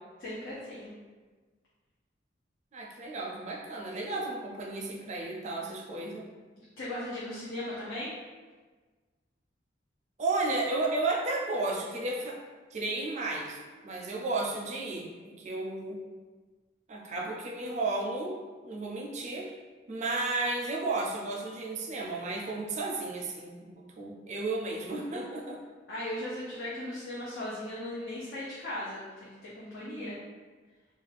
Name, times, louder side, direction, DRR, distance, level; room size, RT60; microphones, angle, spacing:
voice 1, 0.2-0.9 6.8-8.1 25.9-30.2, left 1 dB, 75° left, -8 dB, 0.6 m, -37 dB
voice 2, 2.7-6.2 10.2-12.4 12.7-16.0 16.9-19.5 19.9-25.6 29.9-30.2, right 2 dB, 40° right, -1 dB, 0.4 m, -33 dB
2.4 x 2.3 x 3.2 m, 1.4 s
head